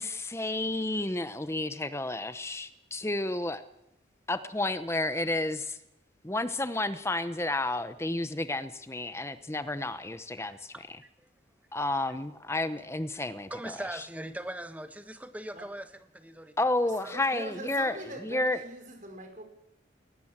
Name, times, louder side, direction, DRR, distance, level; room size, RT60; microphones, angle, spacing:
voice 1, 0.0-3.6 4.3-5.8 6.2-11.0 11.7-13.5 13.9-14.0 16.6-18.0 18.2-18.6, left 2 dB, 15° left, 12 dB, 0.8 m, -31 dB
voice 2, 10.4-11.3 13.5-16.5 17.0-17.1, right 1 dB, 10° right, 9 dB, 1.4 m, -41 dB
voice 3, 17.0-19.4, right 1 dB, 45° right, 5 dB, 5.2 m, -42 dB
21.5 x 18.5 x 7.4 m, 0.84 s
head